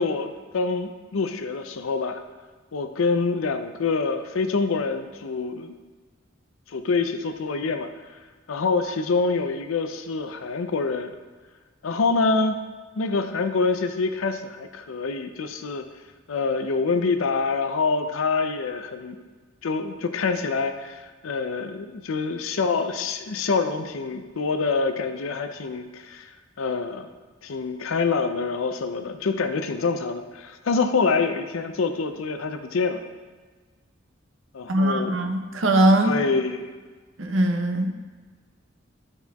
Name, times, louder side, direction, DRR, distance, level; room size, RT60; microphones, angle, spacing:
voice 1, 0.0-2.2 2.7-5.8 6.7-7.9 8.5-11.1 11.8-12.6 13.0-15.9 16.3-19.2 19.6-26.3 26.6-27.1 27.4-33.0 34.5-35.2 36.0-36.7, left 4 dB, 80° left, 8 dB, 0.5 m, -26 dB
voice 2, 34.7-36.1 37.2-37.9, right 1 dB, 70° right, 5 dB, 0.7 m, -21 dB
11.5 x 4.2 x 2.3 m, 1.4 s
head